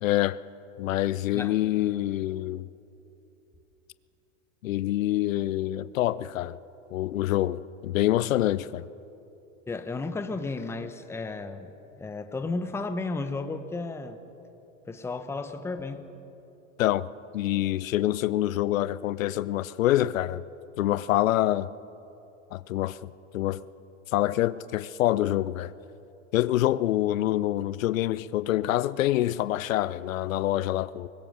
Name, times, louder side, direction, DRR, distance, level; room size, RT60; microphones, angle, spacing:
voice 1, 0.0-0.4 0.8-2.7 4.6-6.6 6.9-8.8 16.8-17.1 17.3-20.4 20.8-21.7 22.5-23.6 24.1-25.7 26.3-31.1, left 14 dB, 80° left, 0.7 m, -26 dB
voice 2, 9.7-11.7 12.0-14.2 14.9-16.1, left 3 dB, 5° left, 0.8 m, -33 dB
22.0 x 19.5 x 6.6 m
supercardioid pair, 135°, 40 cm